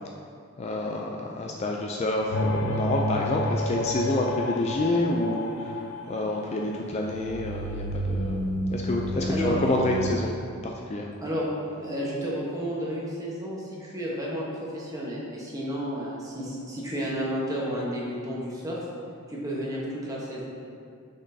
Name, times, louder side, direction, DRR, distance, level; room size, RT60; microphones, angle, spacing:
voice 1, 0.6-10.3 10.6-11.1, left 2 dB, 30° left, 0 dB, 0.3 m, -28 dB
sound 1, 2.3-10.1, equal, 85° left, 0.5 m, -30 dB
voice 2, 9.3-9.6 11.2-11.5 11.8-18.8 19.3-20.4, equal, 15° right, -5 dB, 1.0 m, -32 dB
6.1 x 6.0 x 2.7 m, 2.4 s
head